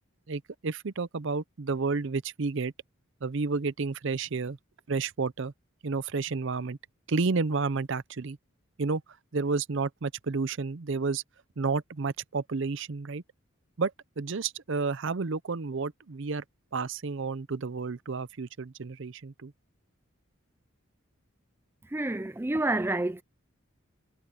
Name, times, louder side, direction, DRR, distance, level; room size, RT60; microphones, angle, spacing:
voice 1, 0.3-2.7 3.2-4.6 4.9-5.5 5.8-6.8 7.1-8.4 8.8-9.0 9.3-11.2 11.6-13.2 13.8-16.4 16.7-19.5, right 4 dB, 60° right, 0.6 m, -31 dB
voice 2, 21.8-23.2, right 2 dB, 10° right, 0.4 m, -29 dB
head